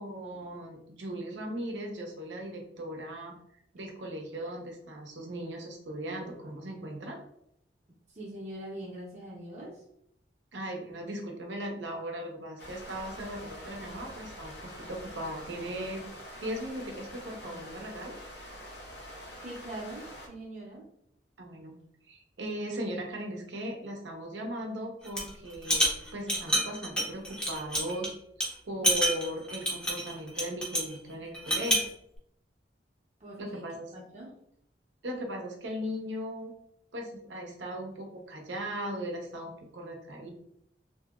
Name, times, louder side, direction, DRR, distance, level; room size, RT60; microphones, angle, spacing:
voice 1, 0.0-3.4 3.7-7.2 10.5-16.1 16.4-18.2 21.4-21.8 22.1-28.1 28.6-31.8 33.4-33.9 35.0-36.5 36.9-40.3, equal, 90° right, 1 dB, 0.7 m, -38 dB
voice 2, 8.1-9.8 17.5-17.7 19.4-20.9 33.2-33.6 33.9-34.3, right 1 dB, 40° right, -5 dB, 0.7 m, -43 dB
sound 1, 12.6-20.3, equal, 70° left, 0.7 m, -45 dB
sound 2, 25.0-25.3 25.6-28.1 28.4-28.5 28.8-30.9 31.3-31.9, equal, 5° left, 0.6 m, -28 dB
2.8 x 2.7 x 2.4 m, 0.72 s
head